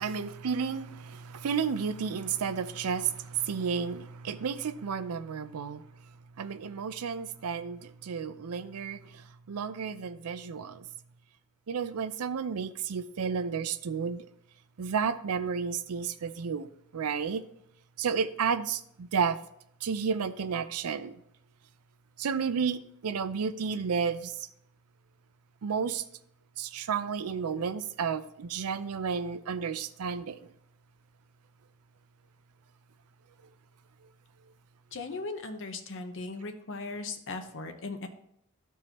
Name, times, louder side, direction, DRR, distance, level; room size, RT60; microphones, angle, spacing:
voice 1, 0.0-5.8 6.4-10.9 11.7-14.3 14.8-17.4 18.0-19.4 19.8-21.2 22.2-24.3 25.6-26.0 26.6-30.4, right 6 dB, 80° right, 0.5 m, -32 dB
voice 2, 34.9-38.1, left 3 dB, 60° left, 0.9 m, -38 dB
14.0 x 4.7 x 3.0 m
head